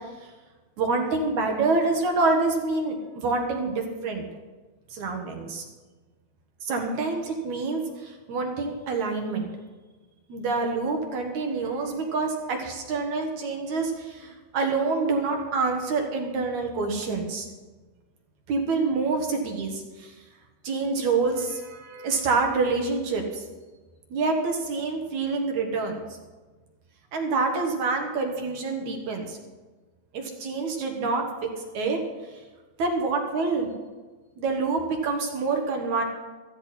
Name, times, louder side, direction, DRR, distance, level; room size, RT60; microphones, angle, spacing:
voice 1, 0.8-4.3 4.9-5.6 6.6-9.5 10.3-17.5 18.5-20.1 20.6-23.4 24.1-26.0 27.1-29.4 30.1-31.2 31.7-32.0 32.8-33.7 34.4-36.0, right 3 dB, 60° right, 2 dB, 2.4 m, -27 dB
14.5 x 14.5 x 4.3 m, 1.3 s
omnidirectional pair, 4.5 m